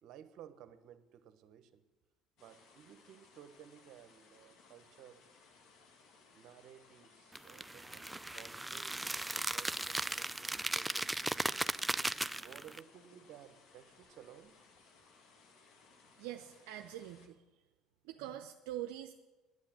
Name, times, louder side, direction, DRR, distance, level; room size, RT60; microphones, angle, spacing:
voice 1, 0.0-1.8 2.4-5.2 6.3-11.6 12.3-14.5, right 10 dB, 60° right, 11 dB, 1.0 m, -56 dB
sound 1, 2.4-17.3, left 4 dB, 60° left, 1.9 m, -63 dB
sound 2, 7.3-12.8, right 1 dB, 10° right, 0.4 m, -37 dB
voice 2, 16.2-17.4 18.1-19.1, right 12 dB, 80° right, 5 dB, 0.6 m, -44 dB
9.6 x 9.6 x 7.5 m, 1.2 s
supercardioid pair, 80°, 0 cm